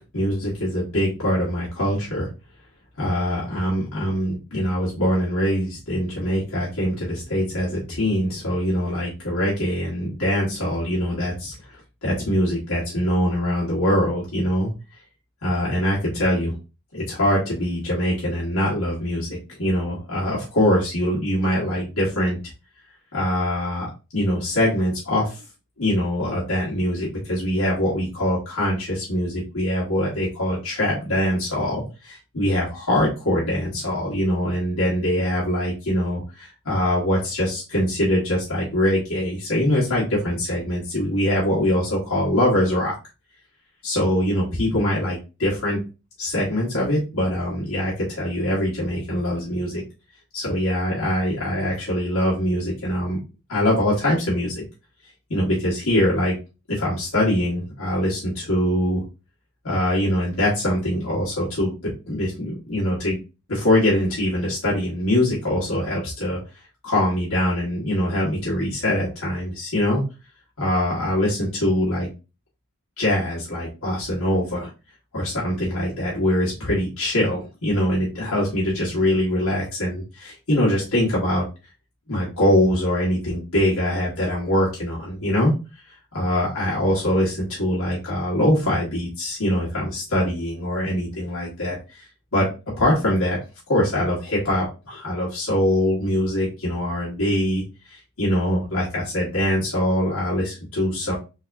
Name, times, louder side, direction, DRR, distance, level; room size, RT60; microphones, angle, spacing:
voice 1, 0.1-2.3 3.0-14.7 15.4-16.6 16.9-22.4 23.1-25.4 25.8-42.9 43.8-45.8 46.2-49.8 50.3-53.2 53.5-54.6 55.3-56.3 56.7-59.0 59.6-63.2 63.5-66.4 66.8-70.0 70.6-72.1 73.0-74.7 75.1-81.4 82.1-85.5 86.1-92.5 92.8-93.4 93.7-97.6 97.9-101.1, left 1 dB, 65° left, -6 dB, 1.5 m, -23 dB
3.9 x 3.5 x 2.6 m, 0.29 s
head